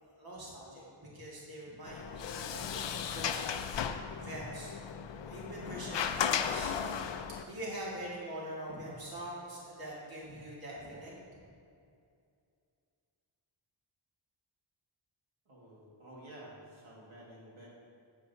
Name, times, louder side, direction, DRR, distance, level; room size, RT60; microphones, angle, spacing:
voice 1, 0.2-3.5 3.8-4.7 5.2-6.8 7.5-11.4, right 1 dB, 50° right, -6 dB, 2.0 m, -44 dB
Sliding door, 1.8-7.4, left 8 dB, 65° left, 0.5 m, -35 dB
voice 2, 15.5-17.7, right 1 dB, 75° right, -5 dB, 1.8 m, -51 dB
9.3 x 8.9 x 2.7 m, 2.4 s
wide cardioid pair, 160°, 48 cm